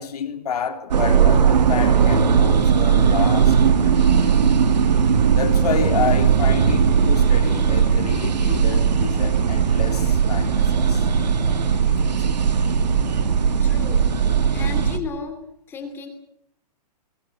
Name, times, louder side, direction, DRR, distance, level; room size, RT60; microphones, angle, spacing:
voice 1, 0.0-4.6 5.3-11.1 11.4-11.5 11.8-12.4, left 7 dB, 65° left, 3.5 m, -30 dB
sound 1, 0.9-15.0, right 7 dB, 80° right, 3.0 m, -18 dB
voice 2, 13.5-14.1 14.5-15.4 15.7-16.1, left 5 dB, 10° left, 2.7 m, -34 dB
27.0 x 22.0 x 6.5 m
hypercardioid pair, 175°, 21 cm